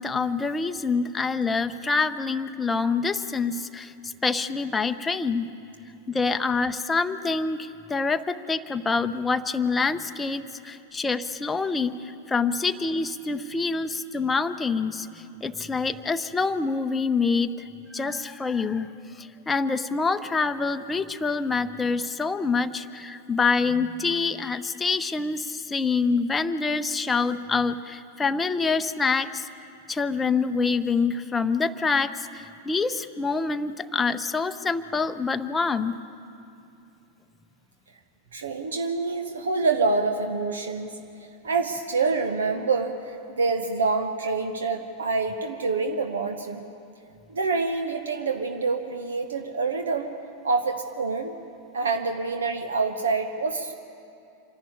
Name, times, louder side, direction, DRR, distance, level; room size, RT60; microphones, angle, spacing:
voice 1, 0.0-5.5 6.1-18.9 19.2-29.5 29.9-36.0, left 4 dB, 15° left, 8 dB, 0.7 m, -26 dB
voice 2, 38.3-41.0 41.4-46.6 47.3-50.1 50.4-51.3 51.7-53.7, right 4 dB, 70° right, 6 dB, 1.0 m, -26 dB
26.0 x 11.5 x 9.7 m, 2.6 s
figure-of-eight pair, 90°, 0 cm